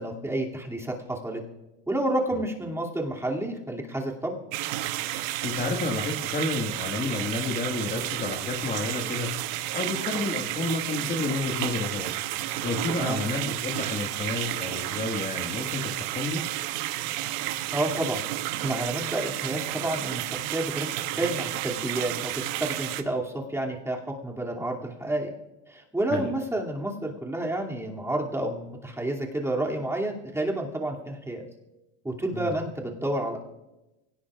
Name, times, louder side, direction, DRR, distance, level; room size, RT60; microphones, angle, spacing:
voice 1, 0.0-1.4 1.9-4.4 13.0-13.2 17.7-25.3 25.7-31.4 32.0-33.4, right 1 dB, 10° right, -2 dB, 2.6 m, -30 dB
sound 1, 4.5-23.0, right 15 dB, 65° right, 1.1 m, -32 dB
voice 2, 5.4-9.3 9.7-12.1 12.6-16.4 26.1-26.3 32.3-32.5, left 3 dB, 25° left, 2 dB, 1.8 m, -30 dB
23.0 x 18.0 x 2.5 m, 0.99 s
supercardioid pair, 105°, 35 cm